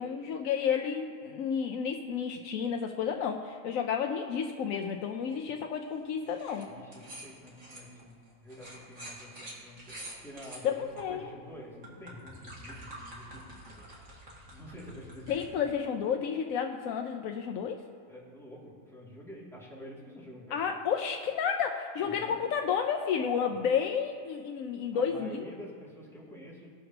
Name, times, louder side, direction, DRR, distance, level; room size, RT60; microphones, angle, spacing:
voice 1, 0.0-6.7 10.6-11.3 15.3-17.8 20.5-25.5, left 7 dB, 85° left, 4 dB, 1.0 m, -31 dB
sound 1, 6.3-6.6 6.9-11.0 11.6-15.5, right 1 dB, 75° right, 2.5 m, -47 dB
voice 2, 6.7-13.8 14.5-15.4 18.1-20.8 22.0-22.4 23.4-23.6 24.9-26.7, equal, ahead, -6 dB, 2.3 m, -48 dB
18.5 x 6.6 x 2.9 m, 2.3 s
omnidirectional pair, 1.4 m